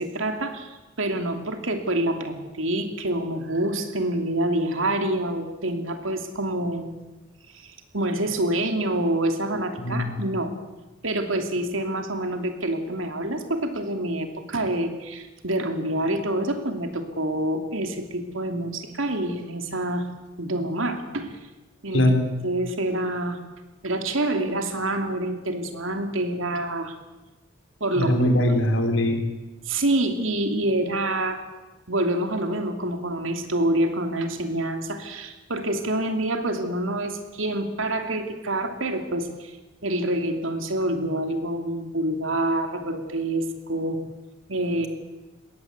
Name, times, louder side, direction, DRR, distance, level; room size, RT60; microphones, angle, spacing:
voice 1, 0.0-7.0 7.5-10.5 11.0-20.1 20.4-21.3 21.8-22.1 22.4-23.4 23.8-26.9 27.8-28.2 29.7-31.4 31.9-39.6 39.8-44.0 44.5-44.9, right 1 dB, 85° right, 6 dB, 2.8 m, -27 dB
voice 2, 9.8-10.2 21.9-22.2 27.9-29.2, left 1 dB, 85° left, 5 dB, 3.8 m, -21 dB
21.5 x 17.5 x 8.2 m, 1.1 s
head